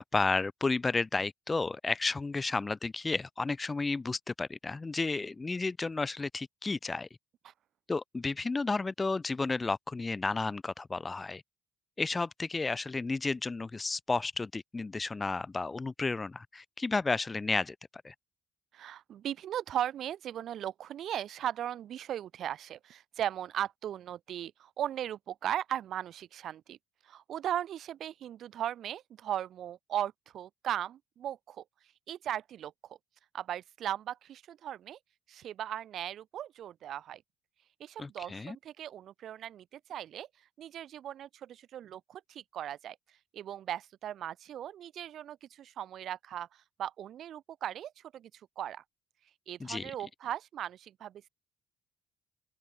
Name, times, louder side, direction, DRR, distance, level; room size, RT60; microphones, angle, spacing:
voice 1, 0.0-7.1 7.9-11.4 12.0-17.8 18.0-18.1 38.0-38.6 49.6-49.9, left 3 dB, 25° left, 4.0 m, -32 dB
voice 2, 18.7-26.8 27.0-31.6 32.1-33.0 33.3-35.0 35.3-37.2 37.8-40.3 40.6-43.0 43.3-48.3 48.6-48.8 49.5-51.3, right 11 dB, 65° right, 6.9 m, -38 dB
open air
hypercardioid pair, 55°, 0 cm